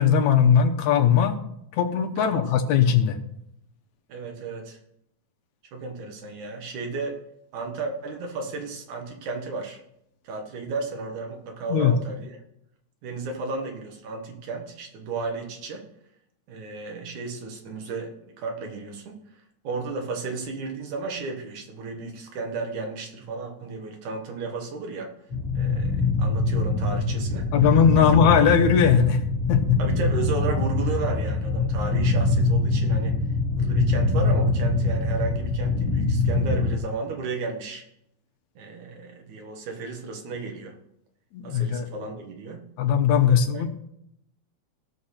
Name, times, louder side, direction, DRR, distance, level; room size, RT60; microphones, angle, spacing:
voice 1, 0.0-1.4 1.8-3.2 11.7-11.9 27.5-29.2 29.5-29.8 41.3-41.9 42.8-43.7, left 7 dB, 80° left, 6 dB, 2.3 m, -19 dB
voice 2, 4.1-4.8 5.7-7.2 7.5-9.8 10.2-12.4 13.0-15.8 16.5-19.2 19.6-25.1 25.5-27.5 28.0-28.1 29.8-33.2 33.6-37.8 38.6-40.8 41.4-42.6 43.5-43.6, right 3 dB, 90° right, 3 dB, 3.0 m, -33 dB
sound 1, 25.3-36.8, left 3 dB, 50° left, 1.8 m, -24 dB
16.5 x 6.5 x 4.3 m, 0.77 s
omnidirectional pair, 3.3 m